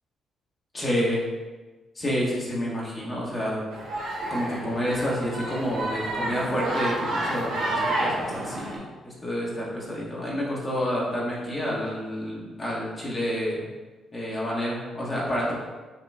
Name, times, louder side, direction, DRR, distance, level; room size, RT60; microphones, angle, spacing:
voice 1, 0.7-1.2 1.9-3.6 4.3-13.6 14.1-15.5, equal, 30° left, -5 dB, 1.3 m, -29 dB
sound 1, 3.7-8.8, right 1 dB, 85° right, 1.3 m, -30 dB
5.8 x 2.4 x 3.4 m, 1.3 s
cardioid pair, 95°, 0 cm